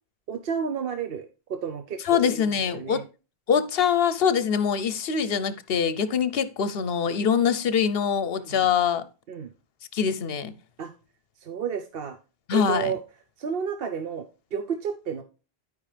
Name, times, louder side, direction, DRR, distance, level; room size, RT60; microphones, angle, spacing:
voice 1, 0.3-3.0 8.4-8.7 9.3-9.5 10.8-10.9 11.4-12.2 12.5-13.0 13.4-15.2, right 7 dB, 65° right, 0.9 m, -31 dB
voice 2, 2.0-3.0 3.5-9.1 9.9-10.5 12.5-12.9, left 7 dB, 70° left, 0.9 m, -24 dB
12.0 x 5.2 x 3.3 m
omnidirectional pair, 1.1 m